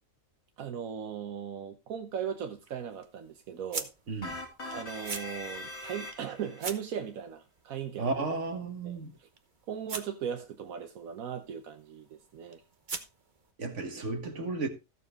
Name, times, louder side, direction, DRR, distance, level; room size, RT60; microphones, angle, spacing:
voice 1, 0.6-3.9 4.7-8.2 8.8-9.3 9.7-12.6, right 8 dB, 80° right, 1.3 m, -38 dB
sound 1, 1.9-13.5, right 4 dB, 40° right, 1.1 m, -46 dB
sound 2, 4.2-6.6, left 1 dB, 50° left, 2.6 m, -41 dB
voice 2, 8.0-9.1 13.6-14.7, right 3 dB, 60° right, 1.8 m, -33 dB
15.5 x 6.9 x 3.6 m
omnidirectional pair, 1.4 m